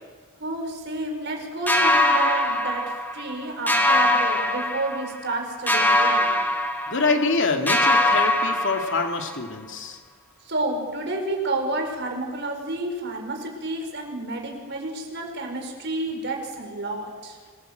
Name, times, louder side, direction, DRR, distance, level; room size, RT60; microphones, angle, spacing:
voice 1, 0.4-6.3 10.4-17.4, right 2 dB, 55° right, 2 dB, 4.9 m, -30 dB
sound 1, 1.7-3.4 3.7-5.3 5.7-7.4 7.7-9.4, left 1 dB, 10° left, 1.7 m, -22 dB
voice 2, 6.9-10.0, left 3 dB, 60° left, 4 dB, 2.4 m, -25 dB
25.5 x 18.0 x 8.0 m, 1.5 s
head